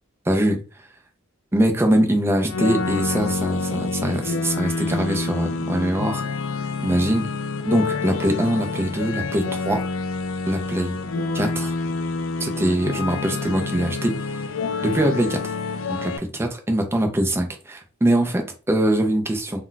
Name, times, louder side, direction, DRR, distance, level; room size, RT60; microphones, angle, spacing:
voice 1, 0.3-0.6 1.5-6.2 6.8-7.3 7.6-9.8 10.5-11.0 11.3-11.7 12.4-14.4 14.8-15.5 15.9-19.6, right 1 dB, 10° right, 3 dB, 0.4 m, -23 dB
sound 1, 2.5-16.2, left 3 dB, 65° left, 0.3 m, -27 dB
2.3 x 2.1 x 3.8 m, 0.35 s
head